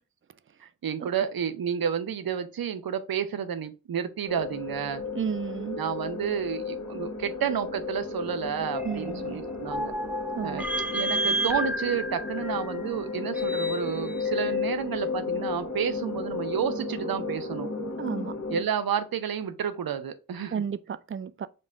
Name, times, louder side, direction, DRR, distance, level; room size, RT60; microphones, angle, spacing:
voice 1, 0.6-5.0 5.8-9.9 10.4-10.6 10.9-17.7 18.5-20.6, right 8 dB, 85° right, 0.6 m, -30 dB
sound 1, 4.3-18.6, left 4 dB, 55° left, 1.2 m, -33 dB
voice 2, 5.1-5.8 8.8-9.4 10.3-10.6 18.0-18.4 20.5-21.5, right 7 dB, 40° right, 0.4 m, -32 dB
sound 2, 8.7-14.3, right 1 dB, 5° right, 0.7 m, -32 dB
5.3 x 2.2 x 3.7 m
cardioid pair, 50°, 34 cm